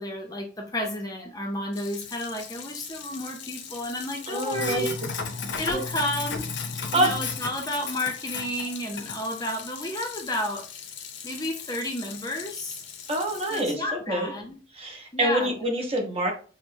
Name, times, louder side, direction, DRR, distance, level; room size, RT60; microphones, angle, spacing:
voice 1, 0.0-5.0 5.6-6.5 6.9-10.6 11.2-12.8 13.5-14.6 15.1-15.5, left 1 dB, 20° left, 2 dB, 0.5 m, -31 dB
Sink (filling or washing), 1.7-13.7, left 5 dB, 70° left, 0.6 m, -36 dB
voice 2, 4.3-4.9 5.7-5.8 6.9-7.1 13.1-14.3 14.7-16.3, right 1 dB, 30° right, 2 dB, 0.8 m, -26 dB
6.0 x 2.1 x 2.7 m, 0.39 s
head